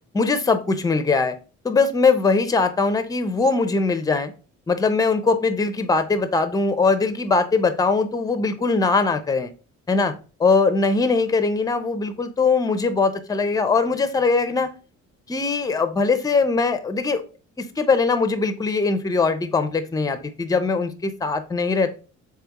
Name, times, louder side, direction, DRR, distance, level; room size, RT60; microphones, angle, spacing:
voice 1, 0.1-1.3 1.6-4.3 4.7-9.5 9.9-10.1 10.4-14.7 15.3-17.2 17.6-21.9, left 4 dB, 10° left, 0.5 m, -21 dB
3.5 x 3.3 x 2.9 m
cardioid pair, 90°, 30 cm